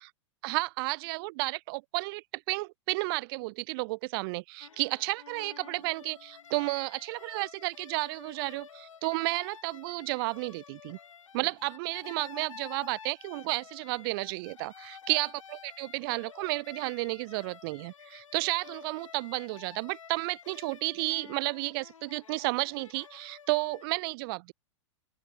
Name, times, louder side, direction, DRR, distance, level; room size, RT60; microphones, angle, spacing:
voice 1, 0.4-11.0 11.3-24.5, right 25 dB, 45° right, 0.6 m, -32 dB
sound 1, 4.6-23.9, left 7 dB, 80° left, 4.6 m, -50 dB
open air
hypercardioid pair, 105°, 16 cm